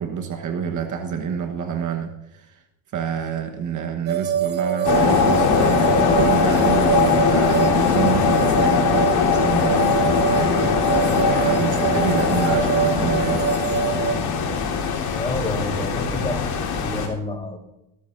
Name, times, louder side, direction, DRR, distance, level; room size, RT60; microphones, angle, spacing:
voice 1, 0.0-2.6 2.9-13.5, right 7 dB, 45° right, 6 dB, 1.2 m, -27 dB
sound 1, 4.1-14.1, right 9 dB, 25° right, 0.6 m, -25 dB
sound 2, 4.8-17.1, left 6 dB, 60° left, 3.6 m, -20 dB
voice 2, 15.1-17.6, left 2 dB, 15° left, 2 dB, 3.7 m, -29 dB
20.0 x 13.0 x 2.6 m, 0.90 s
cardioid pair, 105°, 42 cm